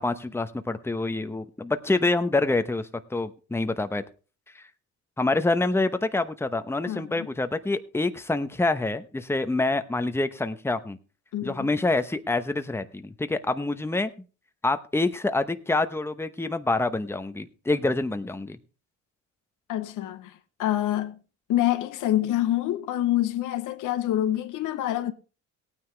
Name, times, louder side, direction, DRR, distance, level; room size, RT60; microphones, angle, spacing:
voice 1, 0.0-4.0 4.6-4.7 5.2-11.0 11.4-14.1 14.6-18.6, left 2 dB, 10° left, 0.9 m, -26 dB
voice 2, 6.9-7.3 11.3-11.7 19.7-21.2 21.5-25.1, left 13 dB, 85° left, 1.1 m, -26 dB
17.5 x 9.4 x 3.3 m
cardioid pair, 90°, 30 cm